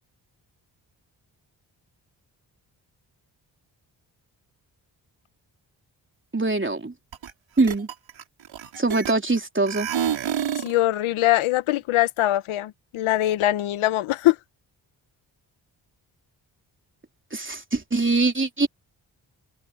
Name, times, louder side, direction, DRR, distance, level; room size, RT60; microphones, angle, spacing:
voice 1, 6.3-6.9 7.6-7.9 8.8-9.9 17.3-18.7, right 3 dB, 25° right, 3.5 m, -23 dB
sound 1, 7.1-7.3 7.6-9.4 9.7-10.8, right 9 dB, 70° right, 4.4 m, -28 dB
voice 2, 10.6-14.3, left 15 dB, 90° left, 1.1 m, -22 dB
supercardioid pair, 40°, 47 cm